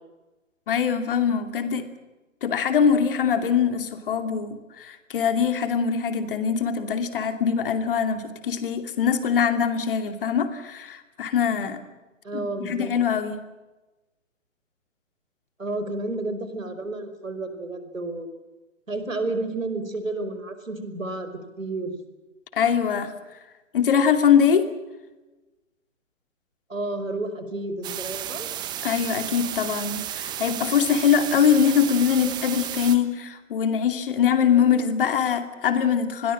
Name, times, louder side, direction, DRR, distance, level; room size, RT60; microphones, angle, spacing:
voice 1, 0.7-1.9 2.4-11.8 12.3-13.4 22.5-23.1 23.7-24.7 28.8-36.3, left 7 dB, 45° left, 9 dB, 2.7 m, -23 dB
voice 2, 12.2-12.9 15.6-18.3 18.9-21.3 21.6-22.0 26.7-28.5, right 2 dB, 80° right, 9 dB, 5.2 m, -31 dB
sound 1, 27.8-33.0, right 11 dB, 10° right, 1.2 m, -33 dB
26.5 x 21.5 x 7.6 m, 1.1 s
figure-of-eight pair, 130°, 39 cm